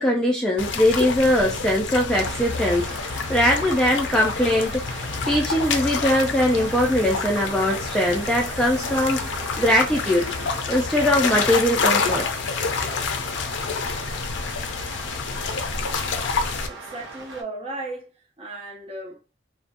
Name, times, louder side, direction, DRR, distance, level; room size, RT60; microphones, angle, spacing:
voice 1, 0.0-4.8 5.3-9.2 9.6-10.3 10.7-12.3, left 1 dB, 5° left, 0.3 m, -21 dB
sound 1, 0.6-16.7, left 4 dB, 70° left, 0.4 m, -28 dB
sound 2, 2.1-17.4, right 3 dB, 65° right, 0.7 m, -39 dB
voice 2, 16.7-18.1 18.4-19.2, right 2 dB, 30° right, 0.8 m, -35 dB
2.7 x 2.2 x 2.4 m
head